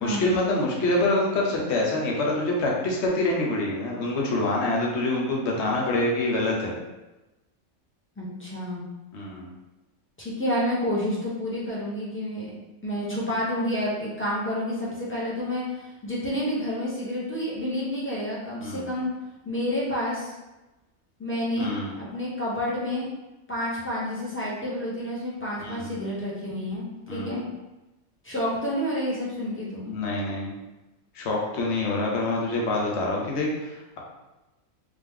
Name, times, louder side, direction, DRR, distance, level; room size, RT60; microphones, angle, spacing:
voice 1, 0.0-6.7 9.1-9.5 18.6-18.9 21.6-22.0 25.6-25.9 27.1-27.4 29.8-30.5 31.1-34.0, left 2 dB, 55° left, -2 dB, 1.1 m, -26 dB
voice 2, 8.2-8.8 10.2-12.5 12.8-15.6 16.0-19.1 19.4-20.3 21.2-21.7 22.0-23.1 23.5-27.4 28.2-29.9, equal, 10° left, -7 dB, 0.9 m, -29 dB
3.4 x 3.1 x 3.6 m, 1.0 s
omnidirectional pair, 1.5 m